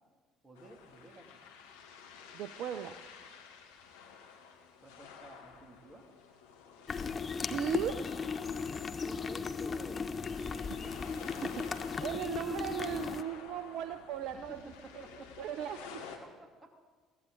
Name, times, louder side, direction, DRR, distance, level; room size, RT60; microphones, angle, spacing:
voice 1, 0.4-1.4 4.8-6.4 9.0-10.1 10.6-10.7 11.0-11.3 14.3-15.9 16.2-16.8, right 1 dB, 20° right, 4 dB, 2.6 m, -53 dB
sound 1, 0.5-16.2, left 6 dB, 70° left, 1.6 m, -52 dB
voice 2, 2.3-2.9 7.5-8.0 12.0-14.6 15.0-15.1 15.4-15.8, right 10 dB, 55° right, 10 dB, 0.6 m, -37 dB
sound 2, 6.9-13.2, left 5 dB, 30° left, 0.7 m, -36 dB
21.5 x 16.5 x 4.0 m, 1.4 s
figure-of-eight pair, 55°, 0 cm